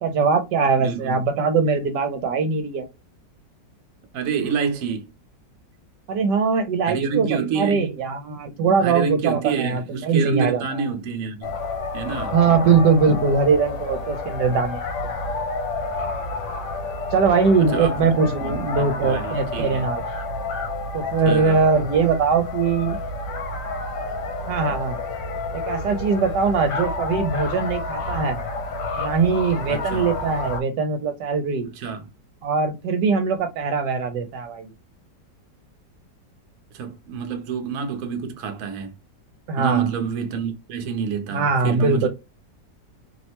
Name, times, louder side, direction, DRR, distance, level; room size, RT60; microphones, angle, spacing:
voice 1, 0.0-2.9 6.1-7.3 7.6-10.8 12.3-14.8 17.1-20.0 20.9-23.0 24.5-25.0 25.5-28.4 29.0-31.7 32.4-34.7 39.5-39.9 41.3-42.1, right 5 dB, 80° right, 1.2 m, -21 dB
voice 2, 0.8-1.2 4.1-5.1 6.9-7.9 8.8-11.5 11.9-12.3 17.6-18.1 18.4-19.9 21.2-21.6 29.7-30.1 31.6-32.1 36.7-38.9 39.6-42.1, right 6 dB, 60° right, 0.9 m, -28 dB
sound 1, 11.4-30.6, left 3 dB, 80° left, 1.2 m, -29 dB
3.0 x 2.1 x 2.8 m
omnidirectional pair, 1.9 m